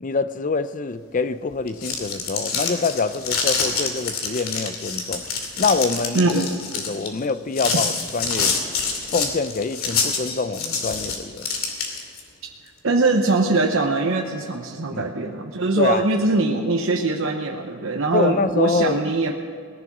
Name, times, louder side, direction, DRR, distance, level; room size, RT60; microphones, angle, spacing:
voice 1, 0.0-5.3 5.6-6.4 6.9-8.6 9.1-11.5 14.9-15.1 15.8-16.0 18.1-19.0, left 4 dB, 40° left, 0.5 m, -25 dB
sound 1, 1.6-12.2, left 5 dB, 85° left, 2.5 m, -26 dB
voice 2, 6.1-6.6 12.8-19.3, right 3 dB, 70° right, 0.9 m, -22 dB
19.0 x 11.0 x 6.0 m
head